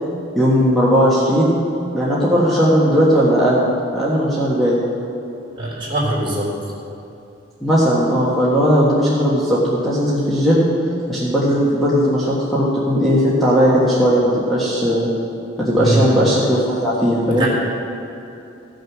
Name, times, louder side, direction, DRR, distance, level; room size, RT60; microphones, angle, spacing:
voice 1, 0.3-1.6 1.9-3.6 3.9-4.8 7.6-10.7 11.1-15.1 15.6-17.5, equal, ahead, -9 dB, 1.5 m, -17 dB
voice 2, 5.6-6.5 15.8-16.1 17.4-17.5, right 1 dB, 25° right, -5 dB, 3.3 m, -21 dB
15.5 x 6.5 x 6.1 m, 2.8 s
head